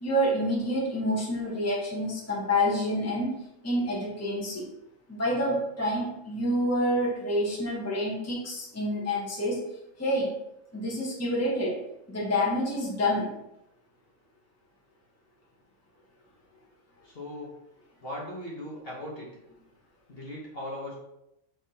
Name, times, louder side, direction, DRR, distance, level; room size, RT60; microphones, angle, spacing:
voice 1, 0.0-3.3 3.6-4.7 5.1-9.6 10.0-10.4 10.7-11.8 12.1-13.3, equal, 10° left, -4 dB, 1.0 m, -28 dB
voice 2, 17.0-17.5 18.0-19.3 20.1-20.9, left 1 dB, 45° left, -4 dB, 1.2 m, -38 dB
5.8 x 3.3 x 2.8 m, 0.86 s
omnidirectional pair, 1.5 m